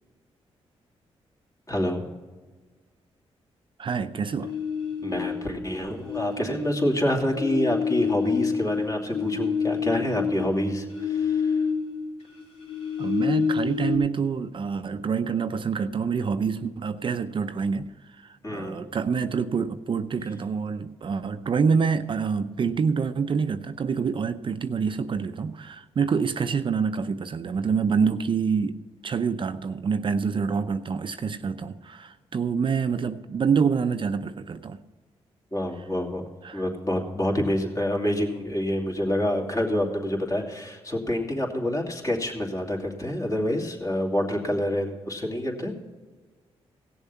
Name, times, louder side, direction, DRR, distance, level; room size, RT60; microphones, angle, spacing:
voice 1, 1.7-2.1 5.0-11.5 18.4-18.9 35.5-36.2 36.5-45.7, left 1 dB, 30° left, 0 dB, 2.7 m, -27 dB
voice 2, 3.8-4.5 13.0-28.8 29.0-34.8 36.4-36.7, right 6 dB, 50° right, 10 dB, 0.6 m, -26 dB
sound 1, 4.4-5.7 6.0-12.1 12.4-14.0, left 6 dB, 70° left, 2.8 m, -28 dB
17.0 x 7.0 x 5.7 m, 1.4 s
cardioid pair, 75°, 11 cm